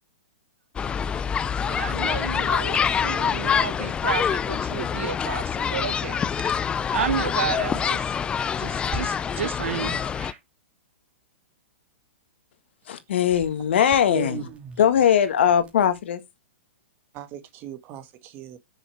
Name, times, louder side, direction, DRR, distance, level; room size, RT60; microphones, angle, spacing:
sound 1, 0.8-10.3, left 7 dB, 15° left, 0.4 m, -26 dB
voice 1, 1.6-6.2 6.9-8.0 8.6-10.0, right 7 dB, 75° right, 1.0 m, -31 dB
sound 2, 8.8-9.0 10.1-10.4 13.2-16.0, right 5 dB, 20° right, 2.8 m, -44 dB
voice 2, 12.9-14.4 14.8-16.2, left 9 dB, 65° left, 1.5 m, -20 dB
voice 3, 14.1-14.8 17.1-18.6, right 9 dB, 35° right, 1.8 m, -37 dB
6.4 x 6.1 x 4.7 m
hypercardioid pair, 120°, 7 cm